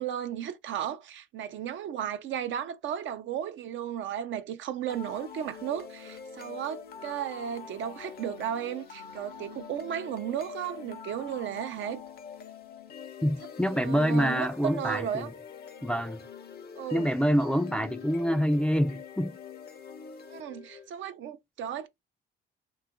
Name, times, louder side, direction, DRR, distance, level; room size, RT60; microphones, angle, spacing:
voice 1, 0.0-12.0 13.7-15.3 16.8-17.1 20.3-21.9, right 9 dB, 70° right, 0.5 m, -34 dB
sound 1, 4.9-20.9, left 7 dB, 50° left, 0.6 m, -45 dB
voice 2, 13.2-15.3 15.8-16.2 16.9-19.4, equal, 5° left, 0.4 m, -26 dB
2.8 x 2.4 x 3.5 m
cardioid pair, 90°, 20 cm